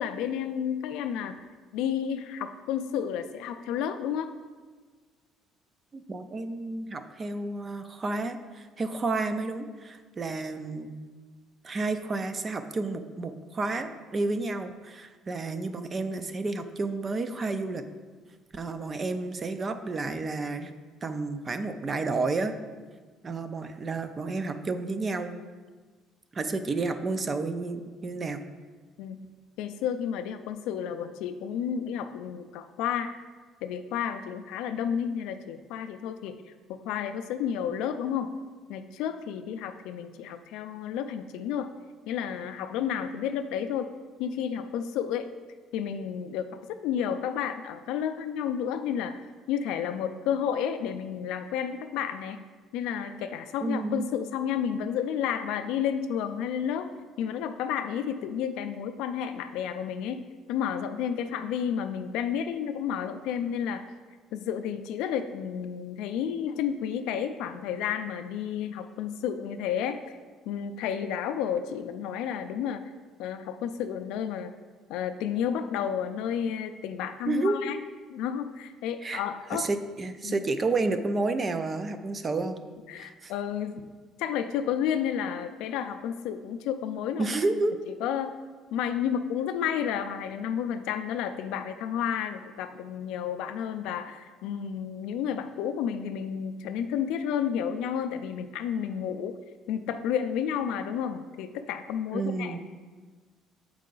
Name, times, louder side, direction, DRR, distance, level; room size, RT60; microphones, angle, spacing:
voice 1, 0.0-1.4 1.7-4.3 29.0-29.3 29.6-33.2 33.6-36.4 36.7-38.3 38.7-41.7 42.1-43.9 44.2-45.3 45.7-52.4 52.7-56.9 57.2-63.9 64.3-70.2 70.5-72.9 73.2-74.5 74.9-77.8 78.1-79.7 80.2-80.4 82.9-83.9 84.2-87.3 88.0-88.3 88.7-99.4 99.7-102.6, left 8 dB, 75° left, 8 dB, 0.3 m, -31 dB
voice 2, 5.9-10.9 11.6-17.8 18.5-20.7 21.0-22.5 23.2-25.3 26.3-28.5 53.6-54.1 77.3-77.6 79.0-79.2 79.5-82.6 82.9-83.3 87.2-87.8 102.1-102.6, right 3 dB, 20° right, 9 dB, 0.3 m, -31 dB
7.3 x 4.6 x 3.8 m, 1.4 s
cardioid pair, 180°, 0 cm